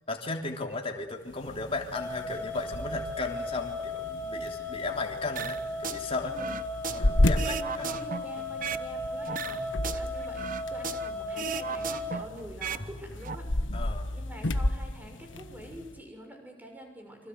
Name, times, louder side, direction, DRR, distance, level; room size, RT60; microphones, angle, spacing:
voice 1, 0.1-6.3 6.8-8.0 9.4-9.6 13.7-14.1, left 3 dB, 30° left, 2 dB, 3.5 m, -36 dB
sound 1, 1.2-16.0, left 1 dB, 75° left, 1.4 m, -33 dB
sound 2, 1.9-12.2, left 1 dB, 10° left, 2.8 m, -36 dB
sound 3, 5.4-6.0 6.3-8.9 9.2-11.1 11.4-12.8 13.1-13.3, right 6 dB, 45° right, 1.1 m, -36 dB
voice 2, 6.1-6.6 7.2-13.5 14.1-17.3, equal, 10° right, 4 dB, 6.4 m, -45 dB
28.5 x 25.5 x 8.1 m, 0.91 s
head